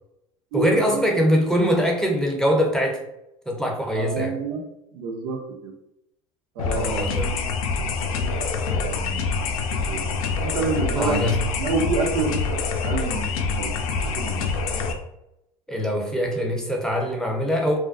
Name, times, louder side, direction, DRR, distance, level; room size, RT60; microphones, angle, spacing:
voice 1, 0.5-3.0 3.5-4.4 6.7-7.3 11.0-11.4 15.7-17.8, equal, 5° left, 1 dB, 0.6 m, -23 dB
voice 2, 3.9-4.7 4.9-5.7 6.6-11.2 11.6-13.7 14.1-14.5, right 4 dB, 65° right, 2 dB, 0.6 m, -29 dB
sound 1, 6.6-14.9, left 4 dB, 70° left, 0.5 m, -26 dB
2.4 x 2.2 x 2.4 m, 0.83 s
hypercardioid pair, 75°, 18 cm